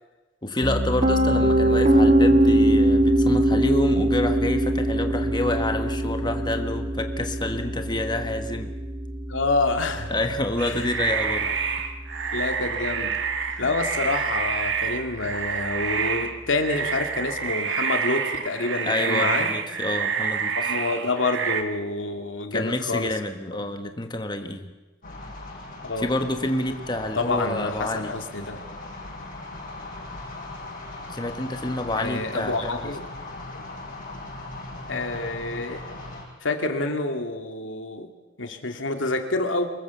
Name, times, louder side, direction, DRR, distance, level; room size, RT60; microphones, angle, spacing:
voice 1, 0.4-8.7 10.1-11.5 13.6-13.7 18.8-20.8 22.5-24.7 26.0-28.1 31.1-33.0, left 1 dB, 25° left, 6 dB, 1.3 m, -28 dB
Piano, 0.6-12.5, right 1 dB, 35° right, 1.6 m, -23 dB
voice 2, 9.3-10.1 10.6-10.8 11.4-11.5 12.3-13.1 13.6-19.5 20.6-23.1 25.8-26.1 27.1-28.6 32.0-33.0 34.9-35.8 36.4-38.1 38.4-39.7, left 3 dB, 85° left, 5 dB, 2.5 m, -27 dB
sound 1, 10.6-21.6, right 6 dB, 65° right, 1.9 m, -28 dB
sound 2, 25.0-36.2, left 2 dB, 50° left, 7.2 m, -39 dB
24.5 x 21.0 x 7.1 m, 1.2 s
head